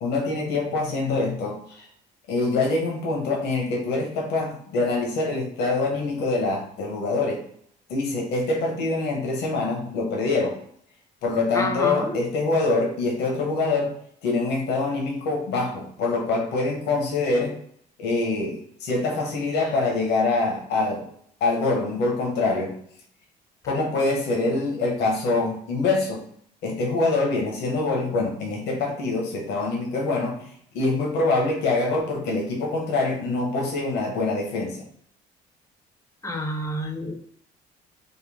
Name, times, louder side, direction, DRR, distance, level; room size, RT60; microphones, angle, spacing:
voice 1, 0.0-1.9 2.3-7.4 7.9-10.6 11.2-13.9 14.2-17.6 18.0-21.1 21.4-22.7 23.7-26.2 26.6-30.5 30.7-34.8, left 3 dB, 80° left, 0 dB, 1.0 m, -25 dB
voice 2, 11.5-12.2 36.2-37.1, left 1 dB, 15° left, 4 dB, 0.6 m, -28 dB
3.7 x 2.2 x 3.5 m, 0.63 s
cardioid pair, 110°, 17 cm